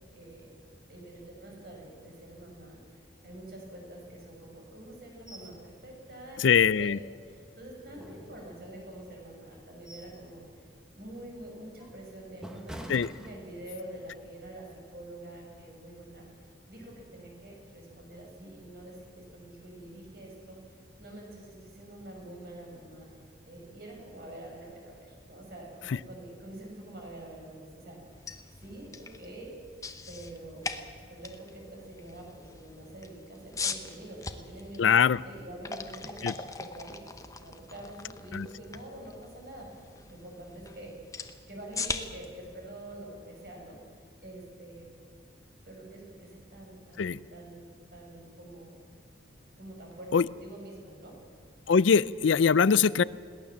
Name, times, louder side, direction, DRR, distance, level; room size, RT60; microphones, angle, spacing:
voice 1, 0.1-0.5 0.9-6.9 7.3-10.7 11.0-20.6 21.0-23.1 23.4-28.0 28.6-29.5 30.1-30.8 31.1-34.8 35.2-37.0 37.4-40.9 41.5-44.9 45.6-48.7 49.6-51.2, right 1 dB, 50° right, 0 dB, 6.6 m, -46 dB
sound 1, 5.3-5.6 5.9-6.0 6.5-7.3 7.8-8.9 9.4-10.3 10.6-10.9 11.4-13.9 14.3-14.5, equal, 5° right, 1.5 m, -47 dB
voice 2, 6.4-7.0 12.9-13.1 25.9-26.0 34.8-35.2 36.2-36.3 38.3-38.5 47.0-47.2 50.1-50.3 51.7-53.0, left 6 dB, 85° left, 20 dB, 0.5 m, -22 dB
sound 2, 28.0-44.0, left 4 dB, 15° left, 0.9 m, -41 dB
22.0 x 17.5 x 7.4 m, 2.1 s
head